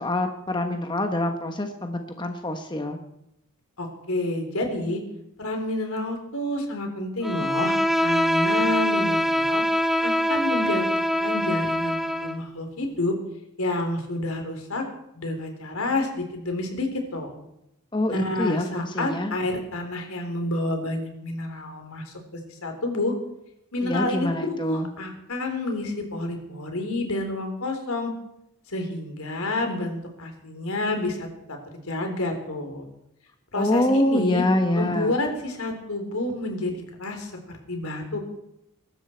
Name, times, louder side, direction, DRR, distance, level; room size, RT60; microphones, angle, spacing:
voice 1, 0.0-3.0 17.9-19.3 23.8-24.9 33.6-35.1, left 1 dB, 20° left, 5 dB, 1.2 m, -25 dB
voice 2, 3.8-5.0 5.4-9.6 10.0-13.2 13.6-14.8 15.1-17.3 18.1-22.1 22.5-23.1 23.7-28.1 28.7-32.8 33.5-34.4 34.7-36.7 37.0-37.3 37.7-38.2, left 2 dB, 75° left, 4 dB, 3.7 m, -29 dB
Bowed string instrument, 7.2-12.4, equal, ahead, 0.6 m, -23 dB
23.0 x 12.5 x 4.5 m, 0.82 s
head